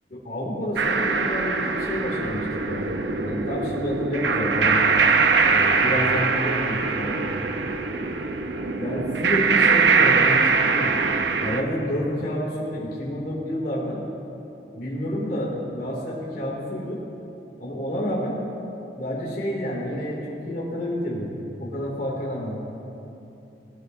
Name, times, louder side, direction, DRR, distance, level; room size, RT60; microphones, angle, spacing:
voice 1, 0.1-2.9 3.2-4.8 5.5-7.2 8.8-11.0 11.4-14.0 14.7-17.0 17.6-18.4 18.9-21.3 21.6-22.6, equal, 55° left, -6 dB, 2.5 m, -29 dB
sound 1, 0.8-11.6, right 4 dB, 80° right, 0.8 m, -22 dB
19.0 x 15.5 x 2.7 m, 3.0 s
head